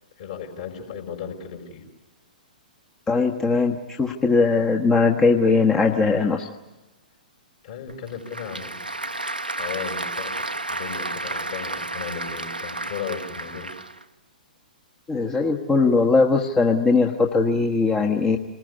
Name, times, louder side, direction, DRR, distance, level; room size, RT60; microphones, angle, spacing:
voice 1, 0.2-1.9 7.6-8.9 9.5-13.7, left 7 dB, 50° left, 4 dB, 5.0 m, -35 dB
voice 2, 3.1-6.5 15.1-18.4, left 4 dB, 15° left, 2 dB, 1.3 m, -20 dB
Applause / Crowd, 7.9-14.0, right 2 dB, 85° right, 1.1 m, -32 dB
27.0 x 20.5 x 9.7 m, 1.2 s
figure-of-eight pair, 115°, 5 cm